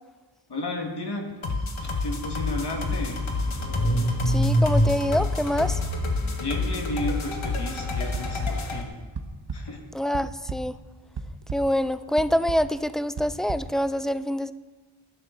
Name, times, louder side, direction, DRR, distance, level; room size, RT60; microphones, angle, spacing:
voice 1, 0.5-1.3 2.0-3.2 6.4-9.0 9.5-9.8, left 2 dB, 50° left, 2 dB, 2.1 m, -32 dB
sound 1, 1.4-8.8, left 3 dB, 70° left, 1.8 m, -29 dB
Car / Engine starting, 1.8-1.9 2.2-7.5, equal, 35° left, 1.8 m, -27 dB
voice 2, 4.3-5.8 9.9-10.7 11.5-14.5, equal, ahead, 13 dB, 0.4 m, -25 dB
sound 2, 8.1-8.5 9.1-9.6 10.0-10.6 11.2-11.6 12.2-12.6 13.2-13.6, right 5 dB, 55° right, 1.2 m, -32 dB
19.5 x 11.0 x 4.0 m, 1.3 s
wide cardioid pair, 115°, 49 cm